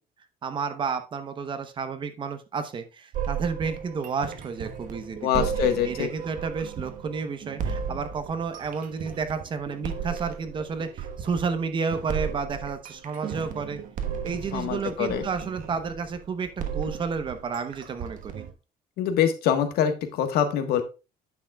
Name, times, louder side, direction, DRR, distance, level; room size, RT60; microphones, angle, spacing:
voice 1, 0.4-13.8 14.2-18.4, right 5 dB, 30° right, 9 dB, 0.9 m, -31 dB
sound 1, 3.1-18.5, right 7 dB, 60° right, 1.2 m, -35 dB
voice 2, 5.2-6.1 14.5-15.2 19.0-20.8, left 9 dB, 80° left, 7 dB, 1.4 m, -24 dB
9.5 x 6.9 x 2.3 m, 0.30 s
cardioid pair, 165°, 16 cm